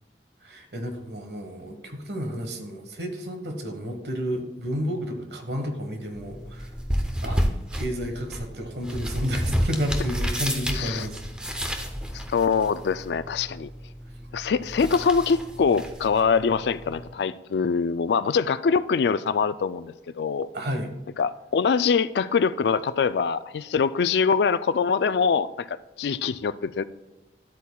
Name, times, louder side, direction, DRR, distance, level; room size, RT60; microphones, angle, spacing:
voice 1, 0.4-6.7 7.2-11.2 20.5-20.9, equal, 70° right, 5 dB, 1.3 m, -31 dB
sound 1, 6.1-17.1, equal, 5° right, 0.7 m, -31 dB
voice 2, 10.7-11.1 12.3-13.7 14.3-20.5 21.2-26.8, left 5 dB, 70° left, 15 dB, 0.3 m, -24 dB
12.0 x 8.3 x 2.3 m, 1.0 s
head